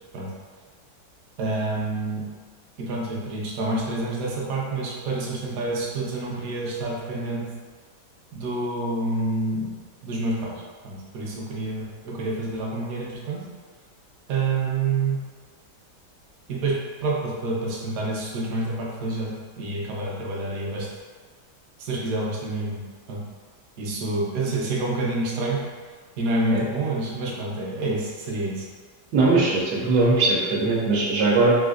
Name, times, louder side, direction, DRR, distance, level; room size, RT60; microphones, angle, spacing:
voice 1, 1.4-2.3 2.8-7.5 8.3-13.5 14.3-15.3 16.5-20.9 21.8-22.8 23.1-23.3 23.8-25.6 26.2-28.7, right 2 dB, 65° right, -3 dB, 1.0 m, -28 dB
voice 2, 29.1-31.6, right 3 dB, 85° right, -4 dB, 1.3 m, -20 dB
3.7 x 2.5 x 2.4 m, 1.5 s
omnidirectional pair, 1.9 m